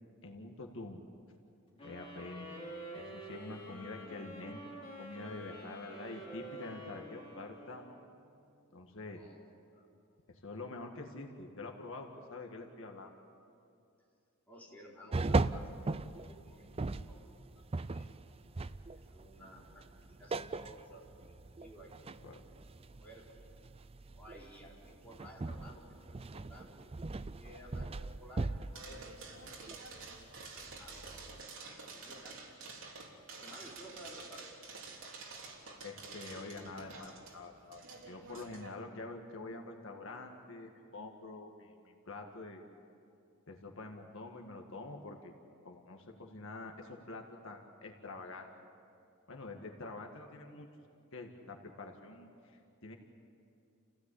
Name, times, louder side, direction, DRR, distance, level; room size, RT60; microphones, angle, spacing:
voice 1, 0.2-1.0 1.8-2.5 2.9-4.6 5.0-8.0 8.7-9.2 10.3-13.1 22.2-22.4 35.8-42.6 43.5-45.3 45.7-48.5 49.3-50.7 51.1-53.0, left 2 dB, 65° left, 2 dB, 1.8 m, -46 dB
sound 1, 1.8-8.2, equal, 25° left, 5.5 m, -48 dB
voice 2, 14.5-17.4 17.7-18.2 18.9-21.9 22.2-22.3 22.7-23.5 24.1-29.0 30.5-31.4 31.7-32.5 33.4-34.5, equal, 5° left, -5 dB, 4.3 m, -55 dB
sound 2, 15.1-31.4, right 3 dB, 25° right, 0.5 m, -39 dB
sound 3, 28.7-38.7, right 4 dB, 65° right, 3.4 m, -49 dB
29.0 x 16.5 x 8.5 m, 2.5 s
head